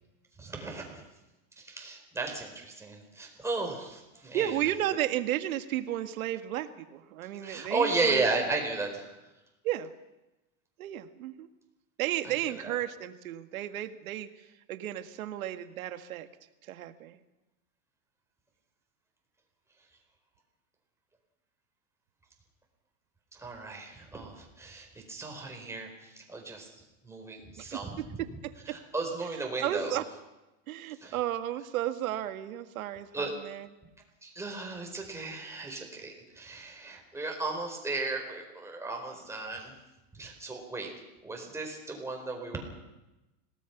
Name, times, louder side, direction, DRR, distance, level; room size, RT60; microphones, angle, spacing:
voice 1, 0.4-1.0 1.6-4.5 7.4-9.1 12.3-12.4 12.6-12.7 23.3-28.2 28.7-30.0 31.0-31.1 33.1-33.3 34.2-39.7 40.1-40.9 41.2-42.6, right 3 dB, 5° right, 1 dB, 4.6 m, -35 dB
voice 2, 4.3-8.2 9.6-9.9 10.8-11.5 12.0-16.3 16.6-17.2 27.6-28.1 28.4-28.8 29.6-30.0 30.7-33.7, right 12 dB, 80° right, 9 dB, 1.9 m, -33 dB
26.5 x 18.5 x 6.0 m, 1.0 s
supercardioid pair, 150°, 41 cm